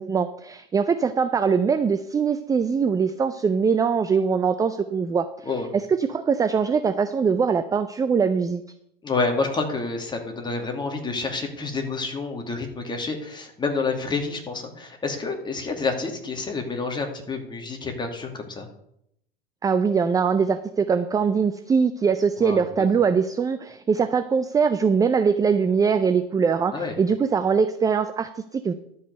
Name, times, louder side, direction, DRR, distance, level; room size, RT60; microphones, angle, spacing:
voice 1, 0.0-5.5 5.7-8.6 19.6-28.7, right 6 dB, 10° right, 11 dB, 0.4 m, -22 dB
voice 2, 9.0-18.7 22.4-22.9 26.7-26.9, left 3 dB, 15° left, 3 dB, 2.4 m, -28 dB
12.0 x 5.5 x 7.9 m, 0.75 s
hypercardioid pair, 115°, 29 cm